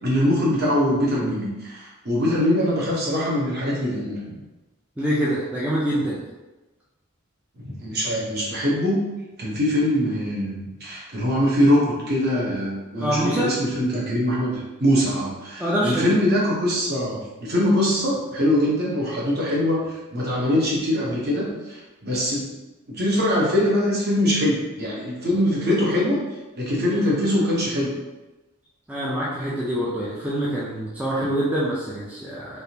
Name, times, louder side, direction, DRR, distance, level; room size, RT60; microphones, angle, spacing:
voice 1, 0.0-4.2 7.6-9.0 9.4-19.8 20.1-22.5 22.9-26.2 26.6-27.9, left 1 dB, 50° right, -5 dB, 0.9 m, -22 dB
voice 2, 5.0-6.2 13.0-13.5 15.6-16.1 28.9-32.6, right 1 dB, 5° right, -7 dB, 0.4 m, -25 dB
3.4 x 2.5 x 2.8 m, 1.1 s
head